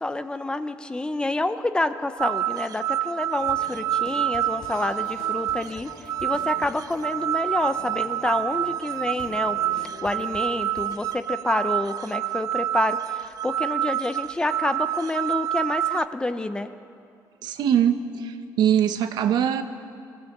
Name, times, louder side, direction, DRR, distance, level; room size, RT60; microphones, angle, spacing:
voice 1, 0.0-5.9 6.2-9.6 10.0-16.7, left 2 dB, 10° left, 10 dB, 0.6 m, -28 dB
sound 1, 2.2-16.1, right 12 dB, 55° right, 0.4 m, -28 dB
sound 2, 3.4-11.0, left 5 dB, 70° left, 1.7 m, -45 dB
voice 2, 17.4-19.6, right 9 dB, 70° right, 8 dB, 1.2 m, -22 dB
23.0 x 16.0 x 7.3 m, 2.4 s
cardioid pair, 160°, 7 cm